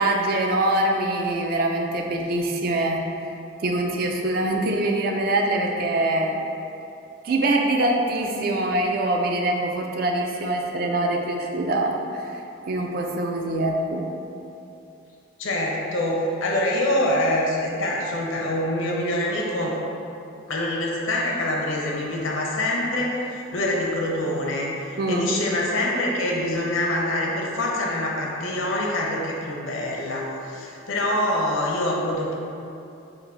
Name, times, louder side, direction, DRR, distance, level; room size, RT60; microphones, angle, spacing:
voice 1, 0.0-3.1 3.6-6.4 7.2-12.4 12.7-14.0 25.0-25.3, right 1 dB, 45° right, 2 dB, 0.4 m, -24 dB
voice 2, 15.4-19.7 20.5-32.3, left 1 dB, 70° left, -2 dB, 0.7 m, -25 dB
3.8 x 2.6 x 4.7 m, 2.8 s
head